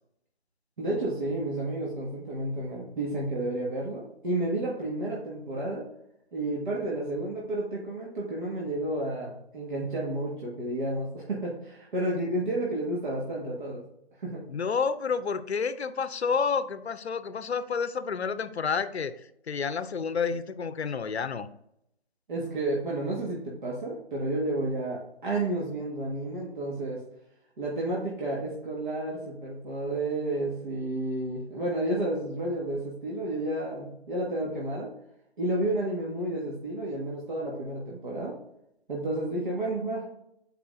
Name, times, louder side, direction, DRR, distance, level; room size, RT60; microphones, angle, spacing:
voice 1, 0.8-5.8 6.3-13.8 14.2-14.4 22.3-27.0 27.6-34.9 35.4-38.3 38.9-40.1, right 1 dB, 50° right, -4 dB, 1.6 m, -31 dB
voice 2, 14.5-19.1 19.5-21.5, left 5 dB, 85° left, 13 dB, 0.6 m, -29 dB
7.6 x 4.9 x 2.5 m, 0.79 s
figure-of-eight pair, 155°, 32 cm